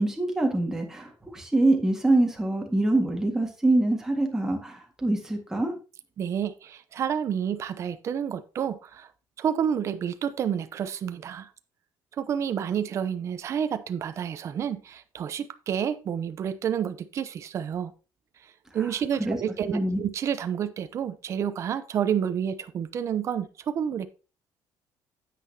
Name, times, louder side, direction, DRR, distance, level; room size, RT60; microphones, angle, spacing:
voice 1, 0.0-5.7 19.2-19.4 19.7-20.0, right 2 dB, 5° right, 2 dB, 1.7 m, -24 dB
voice 2, 6.2-9.1 9.4-11.5 12.2-17.9 18.7-24.1, right 8 dB, 40° right, 11 dB, 0.7 m, -29 dB
9.8 x 8.5 x 2.8 m, 0.33 s
cardioid pair, 165°, 8 cm